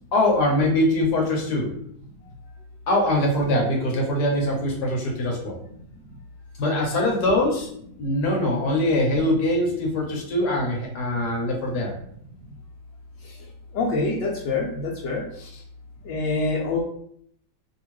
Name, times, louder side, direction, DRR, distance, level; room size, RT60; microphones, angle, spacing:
voice 1, 0.1-1.7 2.9-5.6 6.6-7.7 8.0-11.9, left 1 dB, 65° left, 0 dB, 1.3 m, -22 dB
voice 2, 13.7-15.2 16.1-16.8, left 3 dB, 85° left, -5 dB, 1.3 m, -25 dB
2.9 x 2.7 x 3.0 m, 0.66 s
omnidirectional pair, 1.9 m